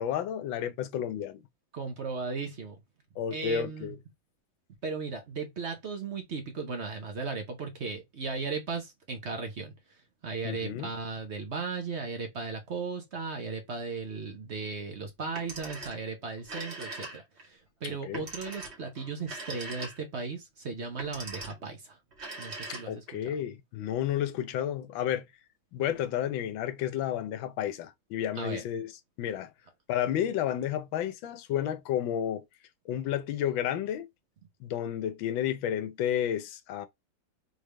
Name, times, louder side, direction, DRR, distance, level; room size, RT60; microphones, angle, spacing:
voice 1, 0.0-1.4 3.2-4.0 10.4-10.9 17.8-18.2 22.7-25.2 25.7-28.9 29.2-29.5 29.9-32.4 32.9-34.1 34.6-36.9, left 10 dB, 85° left, 1.4 m, -31 dB
voice 2, 1.7-2.8 3.3-3.9 4.8-9.7 10.2-22.0 22.4-23.3 28.4-28.6, right 4 dB, 55° right, 0.8 m, -36 dB
Telephone, 15.2-16.1 16.4-17.5 18.1-20.2 20.9-21.7 22.1-23.2, right 2 dB, 35° right, 1.7 m, -41 dB
3.9 x 3.4 x 3.3 m
omnidirectional pair, 2.1 m